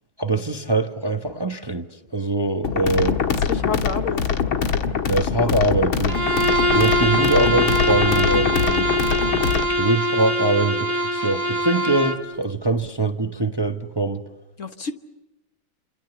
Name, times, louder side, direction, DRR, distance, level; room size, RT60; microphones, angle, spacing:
voice 1, 0.2-3.2 5.1-6.2 6.7-8.9 9.8-14.2, right 2 dB, 30° right, 0.4 m, -23 dB
sound 1, 2.6-9.7, left 6 dB, 75° left, 2.2 m, -23 dB
voice 2, 3.5-4.3 14.6-14.9, left 5 dB, 40° left, 1.4 m, -28 dB
Bowed string instrument, 6.1-12.3, equal, 10° right, 2.1 m, -22 dB
28.5 x 27.0 x 6.9 m
omnidirectional pair, 2.3 m